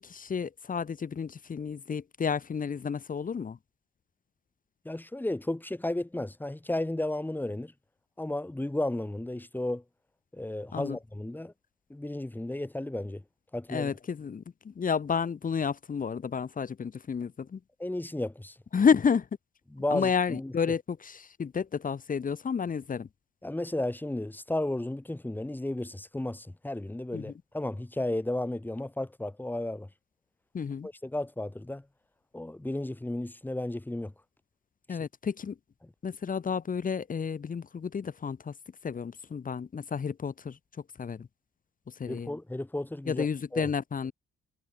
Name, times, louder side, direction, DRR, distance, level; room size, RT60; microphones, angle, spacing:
voice 1, 0.0-3.6 10.7-11.0 13.7-17.6 18.7-19.3 19.9-23.1 27.1-27.3 30.5-30.9 34.9-35.6 36.0-38.5 38.8-40.6 41.0-41.3 41.9-42.3 43.1-44.1, left 6 dB, 45° left, 5.6 m, -31 dB
voice 2, 4.8-7.7 8.2-9.8 10.3-11.5 11.9-13.2 13.5-13.9 17.8-18.6 19.7-20.5 23.4-29.9 30.8-31.8 32.3-34.1 34.9-35.0 42.1-43.3 43.5-43.7, left 1 dB, 10° left, 5.8 m, -33 dB
cardioid pair, 90°, 20 cm